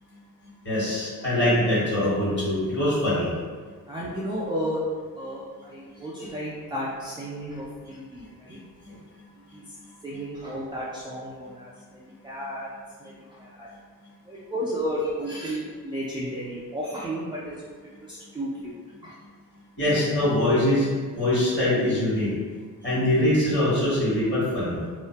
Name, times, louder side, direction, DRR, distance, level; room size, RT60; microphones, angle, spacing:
voice 1, 0.6-3.3 8.8-8.9 19.8-22.3 22.8-24.8, left 1 dB, 30° left, -10 dB, 1.3 m, -23 dB
voice 2, 3.9-4.8 5.2-8.6 9.3-9.6 10.0-12.7 13.0-13.7 14.3-17.5 18.0-18.8 19.0-19.2, equal, 15° right, -7 dB, 0.3 m, -33 dB
2.5 x 2.2 x 2.2 m, 1.6 s
cardioid pair, 100°, 34 cm